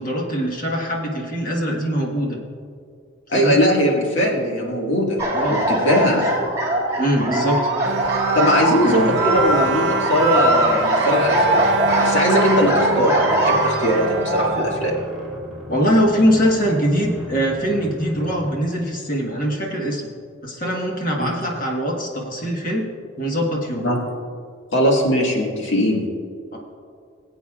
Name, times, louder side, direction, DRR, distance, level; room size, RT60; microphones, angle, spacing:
voice 1, 0.0-2.4 3.3-3.6 5.3-6.1 7.0-7.6 8.8-9.1 15.7-20.0 20.4-22.8 23.2-23.9 26.5-26.6, equal, 45° left, -1 dB, 1.4 m, -22 dB
voice 2, 3.3-5.2 5.5-6.3 8.3-14.9 21.2-21.3 23.8-24.0 24.7-26.0, equal, 70° left, -1 dB, 1.8 m, -20 dB
sound 1, 5.2-14.7, right 1 dB, 20° right, 2.1 m, -21 dB
sound 2, 5.3-18.7, equal, ahead, 2.2 m, -35 dB
Bowed string instrument, 7.8-15.2, right 6 dB, 60° right, 0.3 m, -28 dB
21.0 x 8.2 x 2.4 m, 2.2 s
head